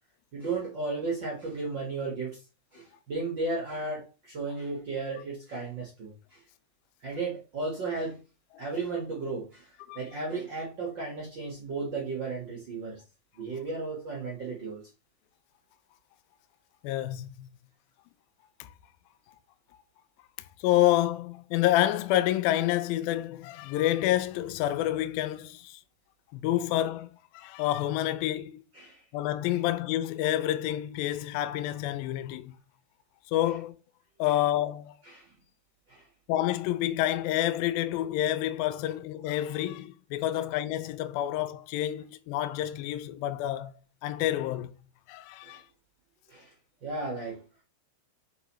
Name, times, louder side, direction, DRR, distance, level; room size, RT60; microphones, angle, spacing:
voice 1, 0.3-2.4 2.7-6.4 7.0-8.2 8.6-13.0 13.4-14.8 28.7-29.0 34.2-34.3 35.0-35.3 35.9-36.0 45.4-45.6 46.3-46.5 46.8-47.4, right 3 dB, 70° right, 1.1 m, -34 dB
voice 2, 16.8-17.5 18.6-18.7 20.6-25.8 26.3-28.6 29.1-32.5 33.3-33.7 34.2-34.9 36.3-43.7 44.0-44.8 45.1-45.6, left 13 dB, 85° left, 2.0 m, -28 dB
8.1 x 5.0 x 3.0 m
omnidirectional pair, 4.8 m